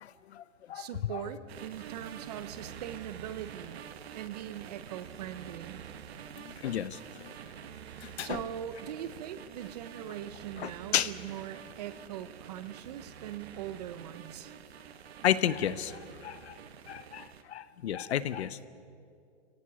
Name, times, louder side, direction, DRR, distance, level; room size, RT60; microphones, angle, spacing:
voice 1, 0.0-1.2 6.4-7.3 8.0-8.4 10.6-11.1 15.2-16.6 16.9-18.6, left 10 dB, 60° left, 15 dB, 1.0 m, -33 dB
voice 2, 0.7-3.8 4.1-5.8 8.2-14.5, right 10 dB, 35° right, 13 dB, 0.8 m, -41 dB
sound 1, 1.5-17.4, right 8 dB, 60° right, 1.4 m, -47 dB
25.5 x 17.5 x 7.0 m, 2.4 s
hypercardioid pair, 160°, 36 cm